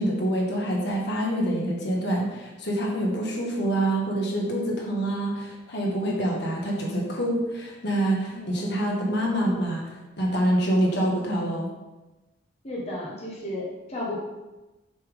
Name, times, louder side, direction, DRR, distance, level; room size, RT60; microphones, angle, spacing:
voice 1, 0.0-9.8 10.2-11.7, right 1 dB, 60° left, -2 dB, 1.6 m, -26 dB
voice 2, 8.3-8.7 12.6-14.2, left 1 dB, 35° left, -5 dB, 1.3 m, -34 dB
6.8 x 5.8 x 3.6 m, 1.1 s
head